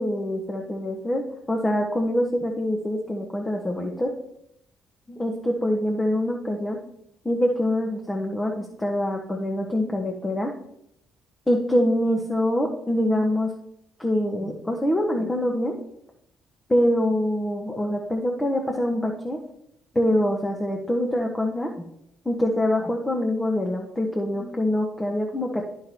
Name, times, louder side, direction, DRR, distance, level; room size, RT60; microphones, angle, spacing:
voice 1, 0.0-4.1 5.1-6.8 7.2-10.5 11.5-13.5 14.0-15.7 16.7-19.4 19.9-21.9 22.2-25.6, left 1 dB, 20° left, 1 dB, 1.1 m, -25 dB
10.0 x 5.8 x 3.0 m, 0.75 s
hypercardioid pair, 45°, 0 cm